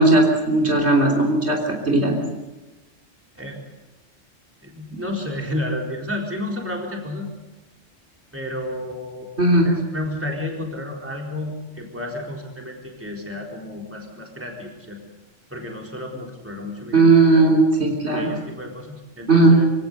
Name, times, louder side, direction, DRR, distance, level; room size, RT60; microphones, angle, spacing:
voice 1, 0.0-1.6 1.8-2.2 9.4-9.7 16.9-18.3 19.3-19.6, right 2 dB, 60° right, 1 dB, 3.9 m, -16 dB
voice 2, 4.6-7.3 8.3-9.3 9.6-15.0 15.5-17.4 18.1-19.7, left 1 dB, 10° right, 0 dB, 4.0 m, -31 dB
25.0 x 17.0 x 8.0 m, 1.1 s
omnidirectional pair, 1.3 m